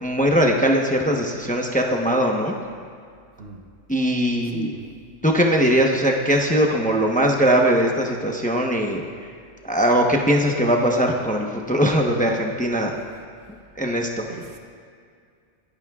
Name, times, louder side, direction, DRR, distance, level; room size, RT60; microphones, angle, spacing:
voice 1, 0.0-2.5 3.9-4.7 5.2-9.1 9.6-12.9 13.8-14.3, equal, 5° left, 1 dB, 0.9 m, -20 dB
voice 2, 4.4-4.9 14.3-14.6, right 4 dB, 55° right, 3 dB, 1.2 m, -36 dB
26.5 x 11.0 x 2.4 m, 2.2 s
omnidirectional pair, 1.3 m